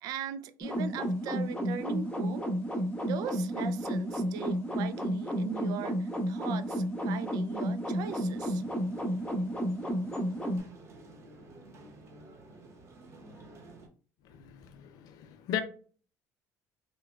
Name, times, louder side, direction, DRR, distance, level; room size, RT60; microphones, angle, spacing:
voice 1, 0.0-2.5 3.0-8.6, right 9 dB, 65° right, 0.4 m, -39 dB
sound 1, 0.6-10.6, equal, 15° left, 1.0 m, -32 dB
sound 2, 7.9-13.9, right 2 dB, 45° right, 0.9 m, -52 dB
voice 2, 14.2-15.6, left 10 dB, 70° left, 0.5 m, -37 dB
4.6 x 2.2 x 2.3 m
cardioid pair, 120°, 7 cm